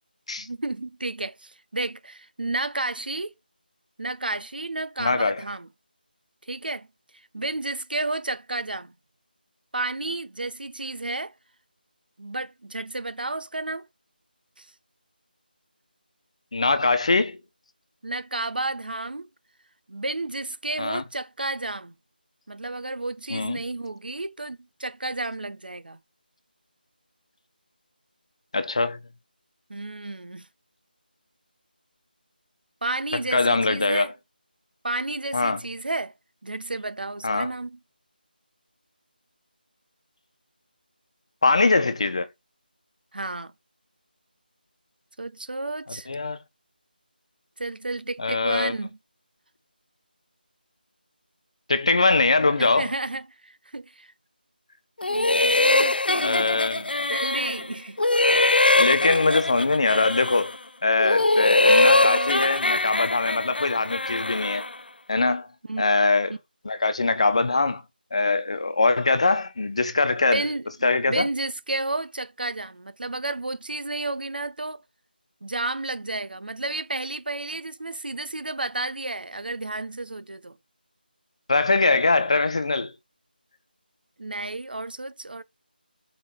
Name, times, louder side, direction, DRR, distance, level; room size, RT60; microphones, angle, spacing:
voice 1, 0.4-3.3 4.0-5.7 6.4-6.9 7.3-8.9 9.7-11.3 12.2-13.8 14.6-14.7 18.0-19.3 19.9-21.9 22.5-26.0 29.7-30.5 32.8-34.1 34.8-36.1 36.4-37.8 43.1-43.5 45.2-46.1 47.6-49.0 52.6-54.1 55.1-58.0 61.6-62.4 65.7-65.8 66.3-66.4 70.3-70.7 71.1-74.8 75.4-80.6 84.2-85.4, right 2 dB, 65° right, 1.5 m, -31 dB
voice 2, 5.0-5.4 16.5-17.4 20.8-21.0 23.3-23.6 28.5-29.0 33.3-34.1 35.3-35.6 37.2-37.5 41.4-42.3 46.1-46.4 48.2-48.7 51.7-52.9 56.2-56.8 58.7-60.5 60.8-64.6 65.1-65.5 65.8-66.3 66.6-67.8 68.1-70.4 70.8-71.3 81.5-82.9, left 3 dB, 35° left, 1.2 m, -22 dB
sound 1, 55.0-57.7 58.0-60.6 61.0-64.7, left 2 dB, 70° left, 1.2 m, -22 dB
5.6 x 5.5 x 5.0 m
figure-of-eight pair, 175°, 5 cm